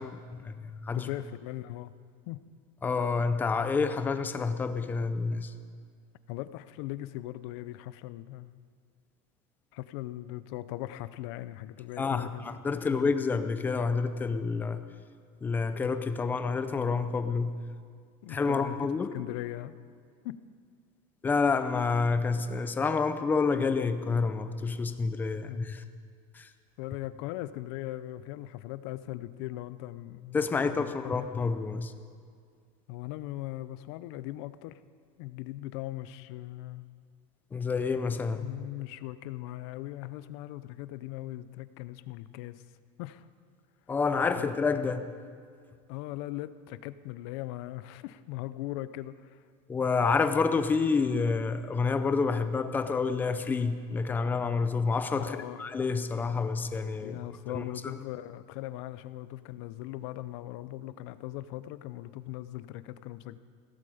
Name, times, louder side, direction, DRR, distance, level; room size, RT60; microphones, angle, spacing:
voice 1, 0.0-1.1 2.8-5.5 12.0-14.9 15.4-17.6 18.3-19.1 21.2-25.8 26.3-26.5 30.3-31.9 37.5-38.5 43.9-45.1 49.7-57.2 57.5-57.9, left 4 dB, 10° left, 10 dB, 0.5 m, -28 dB
voice 2, 0.9-1.9 2.3-2.4 6.3-8.5 9.7-13.1 18.2-19.8 20.2-20.4 25.5-25.6 26.8-31.3 32.9-34.8 35.2-36.9 38.3-42.6 43.0-43.3 44.4-44.5 45.9-49.4 55.2-55.6 57.0-63.4, left 15 dB, 60° left, 15 dB, 0.6 m, -39 dB
16.5 x 14.5 x 5.0 m, 2.1 s
cardioid pair, 175°, 16 cm